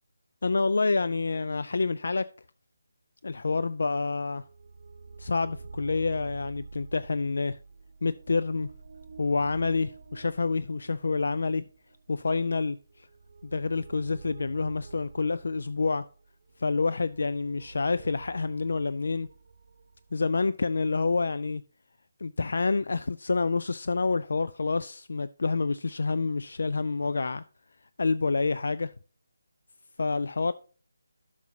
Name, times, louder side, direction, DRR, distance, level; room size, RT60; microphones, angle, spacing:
voice 1, 0.4-2.3 3.2-4.4 5.2-7.6 8.0-8.7 9.2-11.7 12.1-12.8 13.4-16.0 16.6-19.3 20.1-21.6 22.2-27.4 28.0-28.9 30.0-30.5, left 4 dB, 55° left, 0.3 m, -28 dB
sound 1, 4.2-20.9, right 4 dB, 50° right, 0.6 m, -48 dB
11.5 x 6.0 x 2.7 m
figure-of-eight pair, 150°, 0 cm